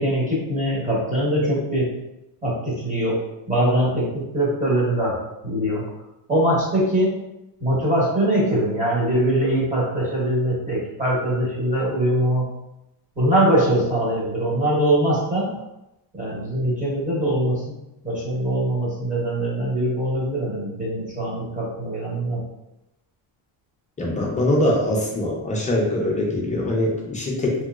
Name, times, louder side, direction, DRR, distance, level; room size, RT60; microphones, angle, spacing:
voice 1, 0.0-1.9 2.4-3.2 3.5-5.1 5.4-5.8 6.3-7.2 7.6-12.5 13.2-15.5 16.1-17.7 18.0-22.4, right 1 dB, 15° right, -6 dB, 1.0 m, -22 dB
voice 2, 24.0-27.5, left 1 dB, 15° left, -3 dB, 0.4 m, -22 dB
3.1 x 2.7 x 2.3 m, 0.91 s
cardioid pair, 155°, 46 cm